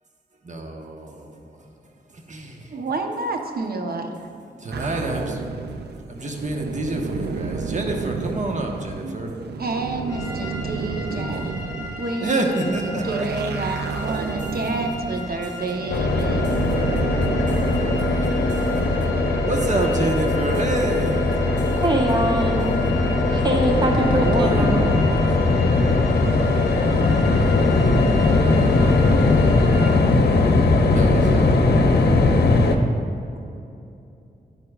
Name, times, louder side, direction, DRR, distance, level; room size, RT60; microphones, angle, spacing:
voice 1, 0.4-1.4 2.1-2.8 4.6-5.4 6.1-9.3 11.2-11.5 12.2-13.1 13.6-13.7 14.1-14.5 16.2-19.1 19.4-21.9 24.2-24.7 30.9-31.6 33.3-33.4, right 2 dB, 50° right, 1.2 m, -28 dB
voice 2, 2.7-4.1 9.0-9.3 9.6-11.6 12.0-16.5, right 3 dB, 65° right, 0.9 m, -29 dB
sound 1, 4.7-18.3, right 5 dB, 85° right, 0.5 m, -32 dB
sound 2, 10.1-30.0, left 3 dB, 20° left, 1.9 m, -37 dB
sound 3, 15.9-32.8, left 2 dB, 85° left, 0.7 m, -19 dB
voice 3, 21.8-22.7 23.3-25.0, right 1 dB, 25° right, 1.1 m, -23 dB
10.0 x 9.3 x 2.4 m
cardioid pair, 60°, 17 cm